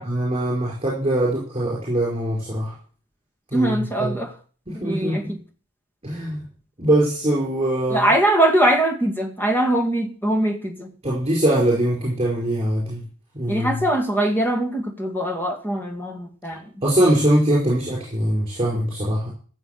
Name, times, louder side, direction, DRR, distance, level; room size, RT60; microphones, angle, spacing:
voice 1, 0.0-2.8 3.5-4.2 4.7-5.4 6.0-6.4 6.8-8.1 11.0-13.0 13.3-13.8 16.8-19.3, right 1 dB, 25° right, -5 dB, 5.0 m, -22 dB
voice 2, 3.5-4.3 4.7-5.4 7.9-10.9 13.5-16.6, right 1 dB, 10° left, 3 dB, 2.0 m, -22 dB
14.5 x 7.4 x 6.8 m, 0.42 s
head